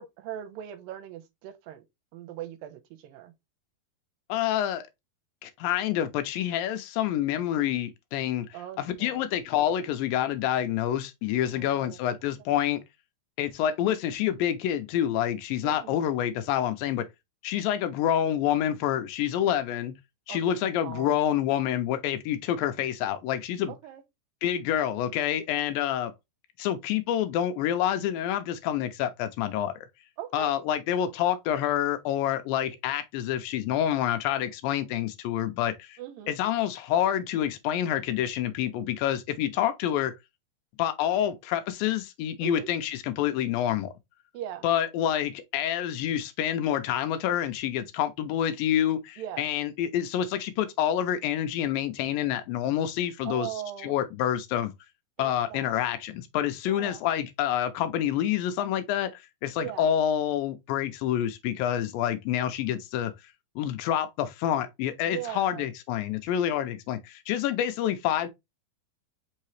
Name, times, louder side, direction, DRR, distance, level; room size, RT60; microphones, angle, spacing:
voice 1, 0.0-1.8 2.1-3.3 8.5-9.3 11.6-12.0 15.6-16.0 20.3-20.6 20.8-21.1 23.7-24.0 30.2-30.5 36.0-36.3 42.4-42.7 44.3-44.6 49.2-49.4 53.3-54.0 55.2-55.8 56.7-57.0 59.6-59.9 65.1-65.7, right 12 dB, 85° right, 2.3 m, -39 dB
voice 2, 4.3-4.9 5.4-8.5 8.8-12.8 13.4-17.1 17.4-20.0 20.3-23.7 24.4-26.1 26.6-29.7 30.3-36.0 36.3-40.1 40.8-43.9 44.6-53.5 53.8-54.7 55.2-63.1 63.6-68.3, left 11 dB, 85° left, 2.3 m, -27 dB
5.4 x 2.8 x 3.1 m
omnidirectional pair, 4.1 m